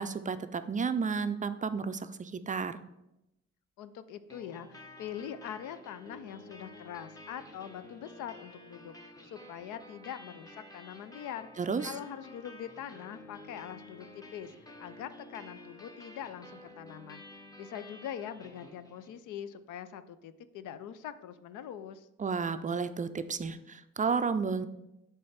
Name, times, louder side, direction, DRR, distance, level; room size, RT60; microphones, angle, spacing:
voice 1, 0.0-2.8 11.6-12.0 22.2-24.7, right 5 dB, 25° right, 11 dB, 0.4 m, -32 dB
voice 2, 3.8-11.5 11.8-14.5 14.8-22.1, left 9 dB, 80° left, 13 dB, 0.5 m, -43 dB
sound 1, 4.3-19.3, left 1 dB, 10° left, 1.0 m, -51 dB
7.5 x 3.4 x 5.7 m, 0.90 s
cardioid pair, 90°, 30 cm